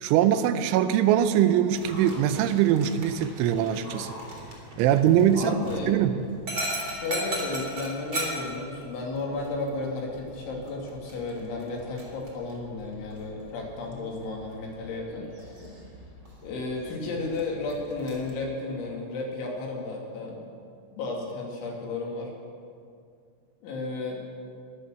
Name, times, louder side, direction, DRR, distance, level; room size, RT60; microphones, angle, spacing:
voice 1, 0.0-4.1 4.8-5.5 5.9-6.2, right 10 dB, 85° right, 11 dB, 3.1 m, -22 dB
Dog, 1.7-18.3, right 1 dB, 30° right, 3.0 m, -39 dB
voice 2, 5.3-6.0 6.8-15.8 16.4-20.5 20.9-22.3 23.6-24.2, left 3 dB, 75° left, -1 dB, 4.7 m, -33 dB
21.5 x 7.5 x 7.5 m, 2.3 s
omnidirectional pair, 5.5 m